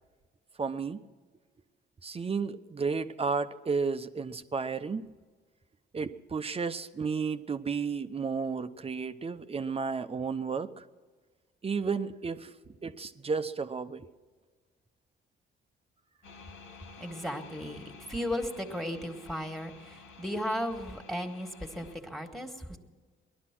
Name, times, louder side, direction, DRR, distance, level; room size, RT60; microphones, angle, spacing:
voice 1, 0.6-1.0 2.0-5.1 5.9-10.8 11.6-14.1, right 5 dB, 30° right, 10 dB, 0.9 m, -33 dB
sound 1, 16.2-22.0, left 5 dB, 85° left, 1.9 m, -52 dB
voice 2, 16.5-22.8, equal, ahead, 4 dB, 2.0 m, -36 dB
19.0 x 12.5 x 6.1 m, 1.4 s
cardioid pair, 90°, 20 cm